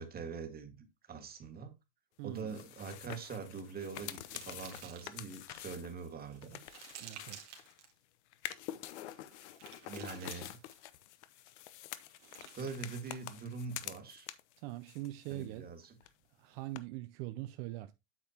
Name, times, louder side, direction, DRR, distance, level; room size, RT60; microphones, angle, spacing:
voice 1, 0.0-1.7 2.2-6.6 9.9-10.6 12.5-14.3 15.3-16.0, right 5 dB, 25° right, 1.8 m, -44 dB
voice 2, 2.2-2.5 7.0-7.4 14.6-15.7 16.4-17.9, right 16 dB, 65° right, 0.7 m, -42 dB
sound 1, 2.4-7.9 8.3-14.6 14.9-15.7 16.0-16.1 16.8-16.9, left 13 dB, 75° left, 0.9 m, -47 dB
sound 2, 3.1-5.4 6.0-7.9 8.8-10.9 11.9-13.5, right 9 dB, 90° right, 2.1 m, -55 dB
8.6 x 6.6 x 2.9 m
supercardioid pair, 105°, 34 cm